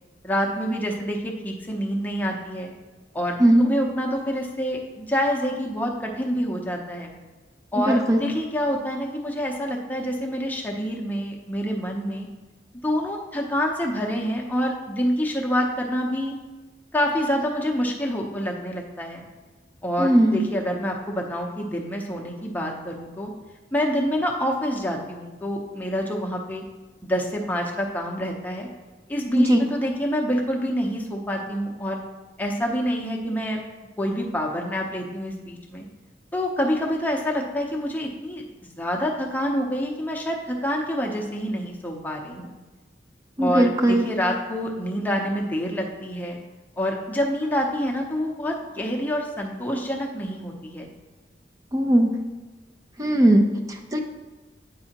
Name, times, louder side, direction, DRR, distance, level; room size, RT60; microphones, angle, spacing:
voice 1, 0.2-2.7 3.1-7.2 7.7-12.3 12.8-16.4 16.9-19.3 19.8-23.3 23.7-26.6 27.0-28.7 29.1-32.0 32.4-33.6 34.0-35.8 36.3-38.4 38.8-42.5 43.4-46.4 46.8-50.9, equal, 10° left, -1 dB, 0.7 m, -27 dB
voice 2, 7.9-8.2 20.0-20.5 29.3-29.7 43.4-44.1 51.7-52.1 53.0-54.0, right 1 dB, 20° right, 3 dB, 0.5 m, -19 dB
8.8 x 5.4 x 2.9 m, 1.2 s
head